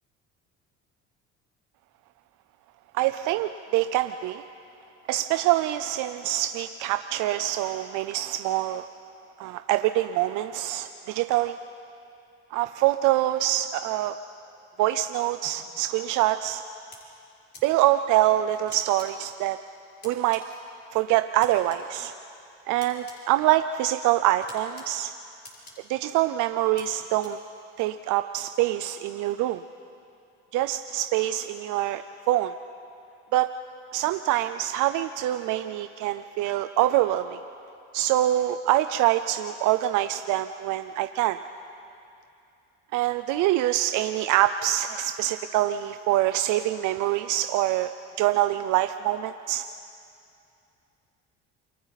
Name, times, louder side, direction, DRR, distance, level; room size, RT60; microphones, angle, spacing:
voice 1, 2.9-4.4 5.1-8.9 9.4-11.6 12.5-14.2 14.8-16.6 17.6-19.6 20.0-20.4 20.9-22.1 22.7-25.1 25.9-27.4 27.8-29.6 30.5-32.5 33.3-33.5 33.9-37.4 37.9-41.4 42.9-47.9 48.2-49.6, right 14 dB, 75° right, 10 dB, 0.6 m, -25 dB
sound 1, 15.4-15.5 16.9-17.0 17.5-17.6 18.7-19.1 20.0-20.4 21.3-21.8 22.8-23.2 24.4-24.8 25.4-25.7 26.8-26.9 27.2-27.3, left 2 dB, 35° left, 5.4 m, -45 dB
28.5 x 23.0 x 4.1 m, 2.6 s
supercardioid pair, 95°, 31 cm